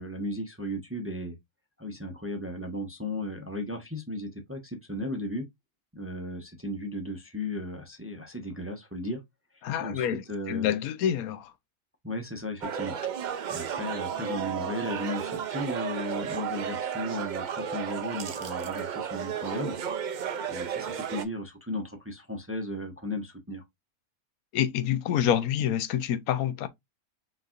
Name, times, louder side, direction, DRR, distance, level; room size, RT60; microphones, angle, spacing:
voice 1, 0.0-1.4 1.8-5.5 5.9-9.2 9.5-10.7 12.0-13.0 13.5-19.8 20.5-23.6, left 1 dB, 10° right, 0.7 m, -35 dB
voice 2, 9.6-11.5 24.5-26.7, left 10 dB, 85° left, 1.1 m, -27 dB
sound 1, 12.6-21.2, right 8 dB, 80° right, 0.4 m, -33 dB
5.9 x 3.2 x 2.4 m
omnidirectional pair, 1.5 m